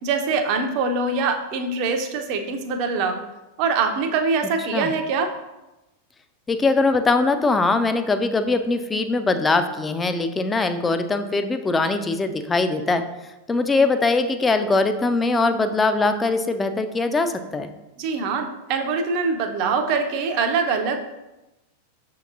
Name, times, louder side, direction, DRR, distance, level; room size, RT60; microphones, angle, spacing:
voice 1, 0.0-3.2 3.6-5.3 18.0-21.0, right 4 dB, 45° right, 6 dB, 0.5 m, -23 dB
voice 2, 6.5-13.0 13.5-17.7, left 3 dB, 15° left, 9 dB, 0.3 m, -21 dB
6.3 x 2.8 x 2.4 m, 1.0 s
figure-of-eight pair, 90°, 0 cm